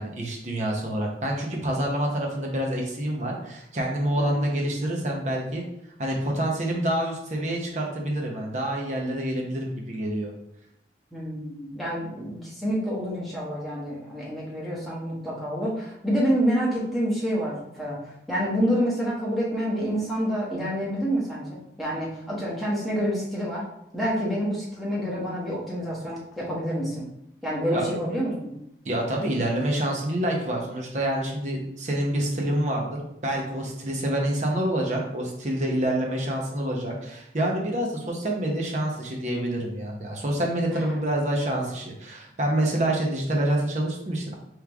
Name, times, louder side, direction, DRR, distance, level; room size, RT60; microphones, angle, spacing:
voice 1, 0.0-5.6 6.0-10.3 27.7-27.8 28.8-44.3, right 1 dB, 40° right, -1 dB, 0.8 m, -27 dB
voice 2, 4.2-4.5 11.1-18.0 18.3-23.6 23.9-27.1 27.4-28.5 40.7-41.1, equal, ahead, -7 dB, 1.1 m, -28 dB
3.6 x 3.2 x 3.5 m, 0.78 s
head